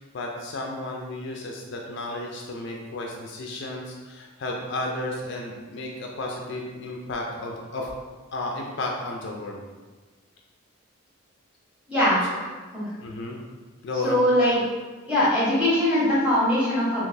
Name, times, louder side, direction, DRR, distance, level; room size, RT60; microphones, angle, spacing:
voice 1, 0.0-7.9 8.3-9.6 13.0-13.4 13.8-14.2, left 2 dB, 55° left, 0 dB, 0.4 m, -33 dB
voice 2, 11.9-12.3 12.7-12.9 14.0-14.6 15.0-17.0, left 1 dB, 5° right, -11 dB, 1.3 m, -21 dB
3.8 x 2.8 x 2.7 m, 1.3 s
head